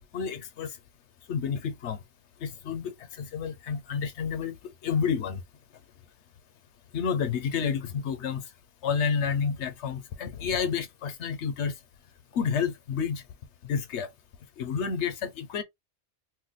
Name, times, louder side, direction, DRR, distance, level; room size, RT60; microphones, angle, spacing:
voice 1, 0.1-0.7 1.3-2.0 2.4-4.5 4.8-5.4 6.9-8.4 8.8-11.7 12.3-13.2 13.6-14.1 14.6-15.6, left 6 dB, 80° left, 1.0 m, -30 dB
2.6 x 2.2 x 3.9 m
omnidirectional pair, 1.2 m